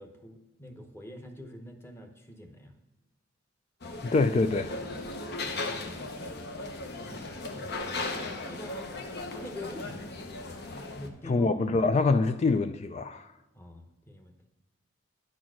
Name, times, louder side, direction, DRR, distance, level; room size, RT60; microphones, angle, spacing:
voice 1, 0.0-2.7 5.4-5.9 7.0-11.5 13.5-14.5, left 1 dB, 10° left, 0.9 m, -46 dB
sound 1, 3.8-11.1, left 2 dB, 55° left, 0.8 m, -37 dB
voice 2, 4.0-4.7 11.2-13.3, left 3 dB, 35° left, 0.3 m, -25 dB
10.0 x 4.4 x 6.1 m
head